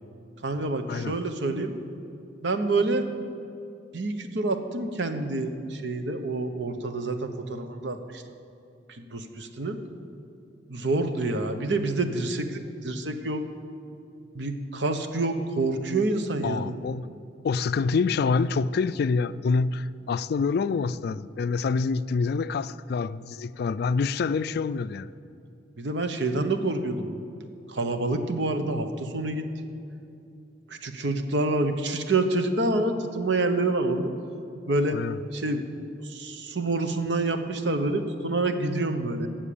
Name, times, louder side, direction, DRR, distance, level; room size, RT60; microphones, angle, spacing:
voice 1, 0.4-1.7 2.4-3.0 3.9-8.2 8.9-9.8 10.7-13.4 14.3-16.7 25.8-27.1 27.7-29.5 30.7-34.1 34.7-35.0 35.3-35.6 36.0-39.3, right 2 dB, 70° right, 1.0 m, -27 dB
voice 2, 16.4-17.1 17.4-25.1 34.9-35.2, left 4 dB, 60° left, 0.3 m, -26 dB
12.5 x 7.4 x 8.5 m
head